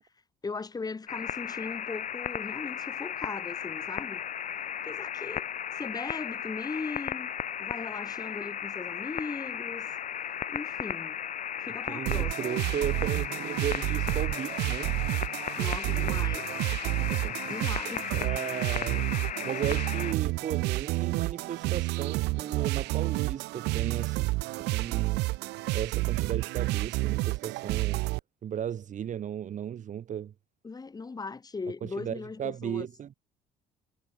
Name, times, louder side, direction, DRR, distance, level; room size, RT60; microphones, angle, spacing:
voice 1, 0.4-4.2 4.8-5.5 5.7-7.3 7.6-9.9 10.5-11.2 11.6-12.6 15.6-16.5 17.4-18.1 30.6-32.9, left 4 dB, 20° left, 2.7 m, -38 dB
sound 1, 1.1-20.1, left 9 dB, 45° left, 1.6 m, -35 dB
voice 2, 11.9-14.9 17.0-17.6 18.1-24.2 24.7-25.3 25.7-28.0 28.4-30.3 31.8-33.1, right 9 dB, 50° right, 1.6 m, -36 dB
sound 2, 12.1-28.2, right 22 dB, 90° right, 0.6 m, -30 dB
cardioid pair, 110°, 17 cm